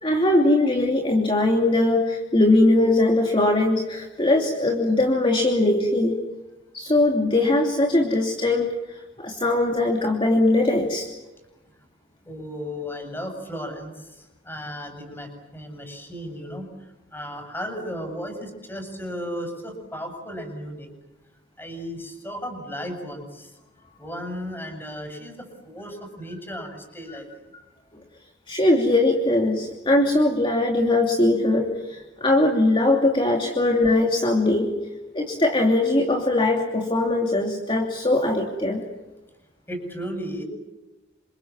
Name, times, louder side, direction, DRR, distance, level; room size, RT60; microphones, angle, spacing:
voice 1, 0.0-6.2 6.7-11.1 28.5-34.7 35.1-38.8, left 2 dB, 25° left, 2 dB, 2.8 m, -21 dB
voice 2, 12.2-20.9 21.6-23.6 24.0-27.3 39.7-40.4, equal, 10° left, 4 dB, 7.8 m, -35 dB
29.0 x 27.0 x 7.3 m, 1.1 s
head